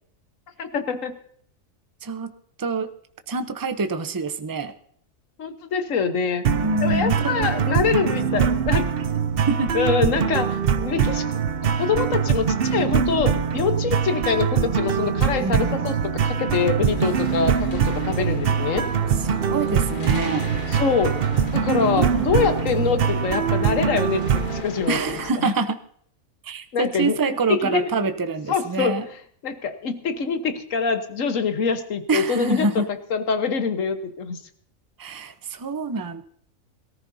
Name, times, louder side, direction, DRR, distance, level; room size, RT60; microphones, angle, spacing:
voice 1, 0.6-1.2 5.4-6.4 6.8-8.8 9.7-11.2 11.7-18.9 20.7-21.2 21.5-25.0 25.4-25.5 26.7-27.2 27.5-27.9 28.5-29.0 29.4-32.8 33.1-34.4, left 5 dB, 70° left, 8 dB, 1.5 m, -24 dB
voice 2, 2.0-2.3 2.6-2.9 3.3-4.7 6.6-7.6 8.4-8.5 9.5-9.7 15.4-15.9 19.5-20.5 22.0-22.1 24.9-25.8 26.4-29.0 32.1-32.9 35.0-36.2, right 3 dB, 20° right, 9 dB, 0.6 m, -26 dB
sound 1, 6.4-24.6, right 7 dB, 50° right, 0.8 m, -23 dB
sound 2, 16.9-25.3, left 3 dB, 40° left, 1.3 m, -37 dB
22.0 x 14.0 x 2.7 m, 0.62 s
omnidirectional pair, 1.4 m